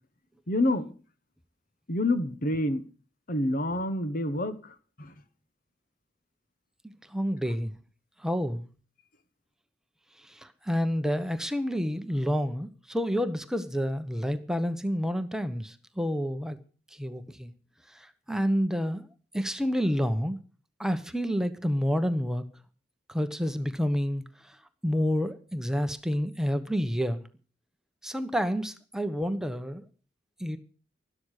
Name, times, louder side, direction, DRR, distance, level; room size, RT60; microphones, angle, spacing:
voice 1, 0.5-0.9 1.9-2.8 3.3-5.1, left 1 dB, 50° left, 11 dB, 1.4 m, -28 dB
voice 2, 7.1-7.7 8.2-8.7 10.3-16.6 17.0-17.5 17.9-19.1 19.3-20.4 20.8-22.4 23.1-24.2 24.8-27.2 28.0-29.8 30.4-30.6, equal, 5° right, 9 dB, 1.1 m, -29 dB
12.5 x 12.5 x 6.6 m, 0.39 s
head